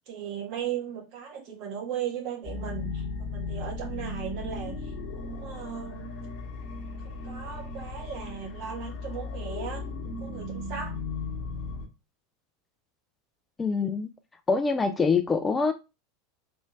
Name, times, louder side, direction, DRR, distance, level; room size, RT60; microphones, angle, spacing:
voice 1, 0.1-6.1 7.0-11.0, right 8 dB, 50° right, 1.4 m, -37 dB
sound 1, 2.4-11.9, left 3 dB, 50° left, 1.2 m, -36 dB
voice 2, 13.6-14.1 14.5-15.7, left 4 dB, 15° left, 0.4 m, -24 dB
4.3 x 3.1 x 2.4 m
figure-of-eight pair, 85°, 0 cm